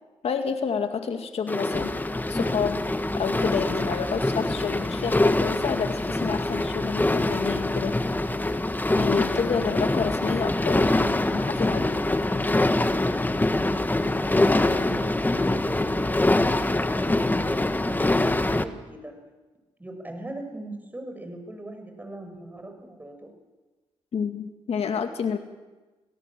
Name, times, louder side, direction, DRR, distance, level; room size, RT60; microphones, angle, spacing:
voice 1, 0.2-1.9 2.3-2.8 3.2-8.1 9.0-12.1 24.1-25.4, left 6 dB, 60° left, 6 dB, 2.2 m, -29 dB
sound 1, 1.5-18.6, left 2 dB, 15° left, 1.5 m, -24 dB
voice 2, 14.2-19.2 19.8-23.3, right 1 dB, 15° right, 4 dB, 6.6 m, -39 dB
26.5 x 17.5 x 7.6 m, 1.2 s
supercardioid pair, 65°, 12 cm